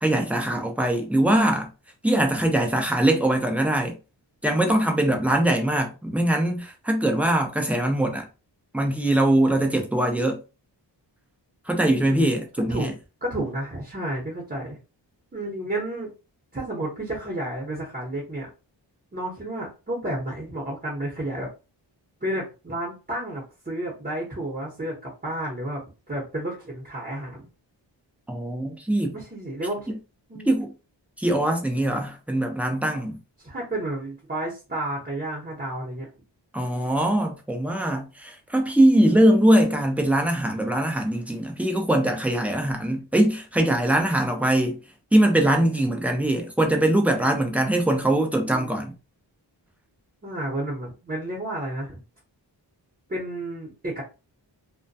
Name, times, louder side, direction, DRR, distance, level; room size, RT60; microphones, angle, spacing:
voice 1, 0.0-1.7 2.0-3.9 4.4-8.3 8.7-10.4 11.7-12.9 28.3-29.2 30.4-30.7 31.2-33.2 36.5-44.8 45.1-48.9, right 1 dB, 5° right, 0.5 m, -22 dB
voice 2, 13.2-14.8 15.3-16.1 16.5-18.5 19.1-21.5 22.2-25.8 26.1-27.5 29.1-30.0 30.3-30.6 33.4-36.1 48.0-48.7 50.2-52.0 53.1-54.0, right 1 dB, 20° right, 0.9 m, -31 dB
2.2 x 2.2 x 2.6 m
wide cardioid pair, 90°, 45 cm